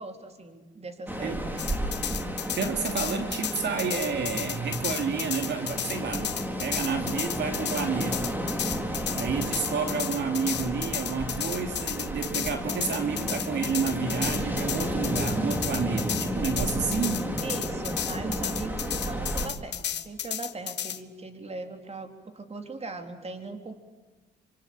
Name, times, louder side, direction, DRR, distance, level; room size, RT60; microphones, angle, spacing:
voice 1, 0.0-1.7 17.4-23.7, right 3 dB, 30° right, 6 dB, 3.7 m, -39 dB
Ocean, 1.1-19.5, equal, 10° right, 3.6 m, -32 dB
sound 1, 1.6-21.0, left 10 dB, 60° left, 1.5 m, -33 dB
voice 2, 2.6-6.3 6.6-8.4 9.1-17.3, right 5 dB, 60° right, 5 dB, 3.0 m, -30 dB
26.5 x 25.5 x 8.8 m, 1.2 s
cardioid pair, 90°, 20 cm